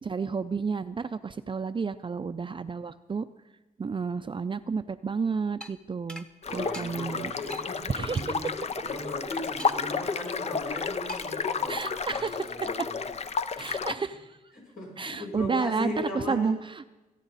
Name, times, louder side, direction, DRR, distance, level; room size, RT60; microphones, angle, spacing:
voice 1, 0.0-3.3 3.8-6.3 6.5-7.3 7.9-8.3 11.7-12.3 13.6-14.4 15.0-16.6, right 5 dB, 35° right, 10 dB, 0.5 m, -31 dB
sound 1, 5.6-5.7 6.1-6.3 6.7-6.9 7.5-7.7 8.2-8.3 9.6-10.0 11.1-11.4, equal, 5° left, 1.0 m, -42 dB
sound 2, 6.4-13.9, left 5 dB, 45° left, 0.6 m, -32 dB
voice 2, 6.5-13.1 13.5-13.7 14.5-16.6, left 1 dB, 75° left, -4 dB, 6.3 m, -38 dB
25.0 x 9.2 x 4.1 m, 1.1 s
cardioid pair, 75°, 15 cm